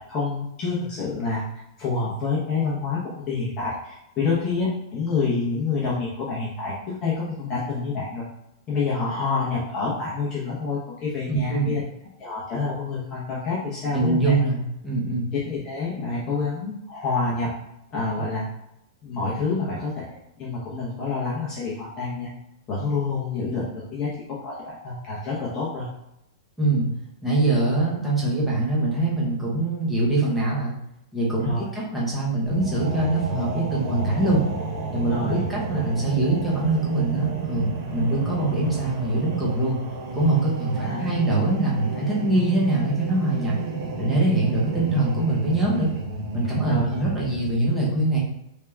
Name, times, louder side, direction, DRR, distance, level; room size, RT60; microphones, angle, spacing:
voice 1, 0.1-1.4 1.8-8.3 8.7-11.8 12.2-14.4 15.3-17.5 17.9-18.4 19.0-20.1 20.4-22.3 22.7-25.9 31.4-31.7 35.1-35.4 40.7-41.1 46.7-47.0, left 4 dB, 20° left, -7 dB, 0.8 m, -27 dB
voice 2, 11.3-11.7 13.9-15.3 26.6-26.9 27.2-30.7 31.1-34.4 34.9-39.8 40.1-43.5 44.0-45.9 46.3-48.2, right 2 dB, 5° right, -7 dB, 0.9 m, -23 dB
Voice Tone Loop, 32.5-47.5, right 4 dB, 35° right, 0.7 m, -31 dB
3.4 x 2.8 x 3.4 m, 0.80 s
supercardioid pair, 170°, 2 cm